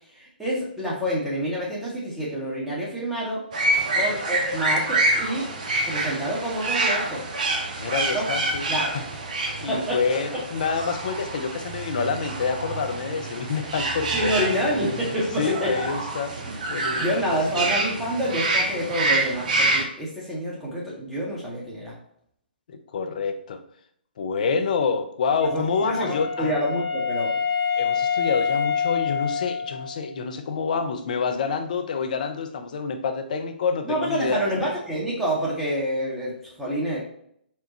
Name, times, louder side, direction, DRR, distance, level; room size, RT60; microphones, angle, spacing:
voice 1, 0.2-3.4 4.0-5.5 5.9-7.3 8.1-8.2 8.7-8.9 9.7-10.0 10.3-10.4 14.1-15.7 16.4-16.5 17.0-21.9 25.5-27.3 33.8-37.0, equal, 5° right, -6 dB, 0.9 m, -27 dB
sound 1, 3.5-19.8, right 2 dB, 50° right, 0.7 m, -27 dB
voice 2, 3.8-4.1 7.8-9.0 9.6-14.3 15.0-16.3 16.7-17.7 22.7-23.6 24.2-26.5 27.8-34.5, left 5 dB, 50° left, 7 dB, 0.5 m, -27 dB
Wind instrument woodwind instrument, 25.4-30.2, left 6 dB, 25° left, 0.8 m, -27 dB
4.4 x 2.3 x 4.0 m, 0.70 s
figure-of-eight pair, 130°, 6 cm